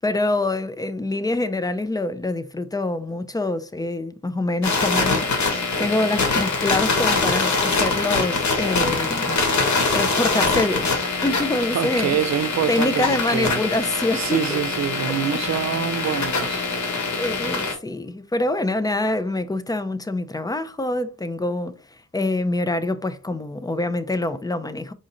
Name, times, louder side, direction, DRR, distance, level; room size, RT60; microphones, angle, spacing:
voice 1, 0.0-9.4 9.9-10.9 11.2-12.2 12.7-14.6 15.1-15.4 16.0-16.4 17.2-24.9, left 2 dB, 15° left, 0.4 m, -25 dB
sound 1, 4.6-17.7, left 3 dB, 70° left, 1.5 m, -23 dB
voice 2, 11.7-13.6 14.1-16.7, right 9 dB, 65° right, 0.5 m, -25 dB
4.9 x 2.6 x 4.1 m
wide cardioid pair, 110°, 30 cm